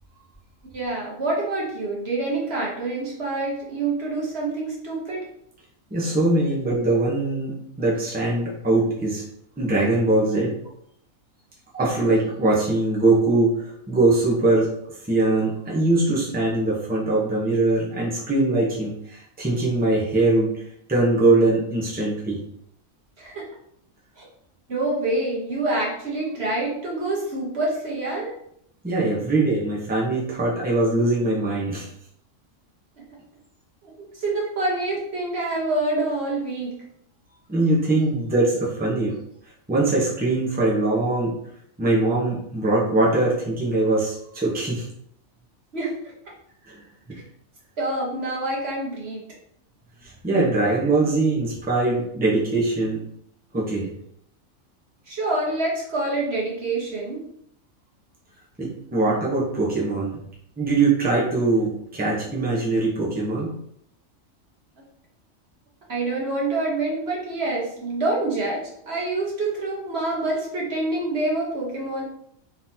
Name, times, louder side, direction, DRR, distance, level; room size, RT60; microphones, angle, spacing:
voice 1, 0.7-5.3 23.2-23.4 24.2-24.3 24.7-28.3 33.8-36.8 45.7-45.9 47.8-49.2 55.1-57.2 65.9-72.0, right 2 dB, 50° right, -3 dB, 1.3 m, -26 dB
voice 2, 5.9-9.2 9.6-10.5 11.7-14.7 15.1-20.6 20.9-22.4 28.8-31.9 37.5-39.2 39.7-41.3 41.8-44.9 46.7-46.8 47.1-47.2 50.0-53.0 53.5-53.9 58.6-60.2 60.6-63.5, right 2 dB, 10° right, -5 dB, 0.9 m, -22 dB
4.0 x 3.9 x 2.8 m, 0.71 s
omnidirectional pair, 1.4 m